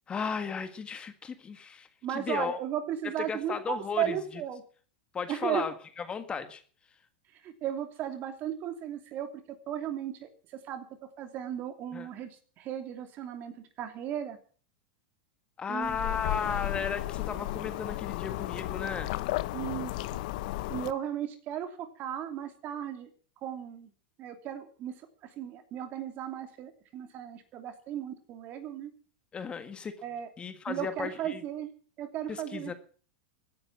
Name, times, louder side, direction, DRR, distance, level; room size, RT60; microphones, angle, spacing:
voice 1, 0.1-2.6 3.0-4.4 5.1-6.6 11.9-12.1 15.6-19.1 29.3-30.0 30.4-31.4 32.3-32.7, left 6 dB, 20° left, 10 dB, 1.7 m, -35 dB
voice 2, 2.0-4.6 5.3-5.6 7.4-10.3 10.7-10.9 11.2-12.3 12.6-14.4 15.7-16.1 19.5-20.2 20.7-23.1 23.4-23.9 24.2-25.0 25.4-28.9 30.0-30.3 30.7-31.7 32.0-32.7, right 10 dB, 40° right, 8 dB, 2.9 m, -35 dB
sound 1, 15.8-20.9, left 18 dB, 65° left, 0.9 m, -34 dB
15.5 x 9.7 x 7.4 m, 0.43 s
hypercardioid pair, 115°, 5 cm